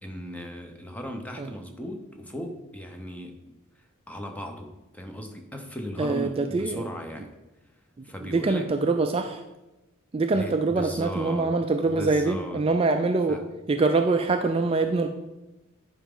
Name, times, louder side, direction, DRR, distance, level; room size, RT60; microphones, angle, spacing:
voice 1, 0.0-3.4 3.7-7.4 7.6-8.7 10.3-11.6 11.9-12.6 13.3-13.4, equal, 5° left, 3 dB, 0.7 m, -37 dB
voice 2, 6.0-6.8 8.0-9.4 10.1-13.4 13.7-15.1, right 3 dB, 25° right, 5 dB, 0.3 m, -24 dB
10.0 x 5.0 x 3.8 m, 0.99 s
head